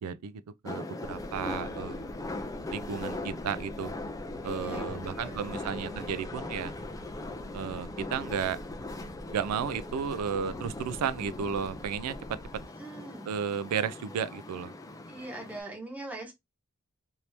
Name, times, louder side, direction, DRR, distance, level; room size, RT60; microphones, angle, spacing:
voice 1, 0.0-2.1 2.7-3.9 4.4-6.7 7.5-8.6 9.3-12.4 13.3-14.7, right 7 dB, 85° right, 0.4 m, -33 dB
sound 1, 0.7-15.6, left 2 dB, 15° left, 0.4 m, -40 dB
sound 2, 1.0-12.6, equal, 50° right, 1.3 m, -47 dB
voice 2, 4.4-6.1 12.7-13.3 15.1-16.3, right 2 dB, 5° right, 1.0 m, -43 dB
Drum, 4.9-7.3, left 3 dB, 80° left, 0.6 m, -53 dB
2.9 x 2.7 x 3.2 m
head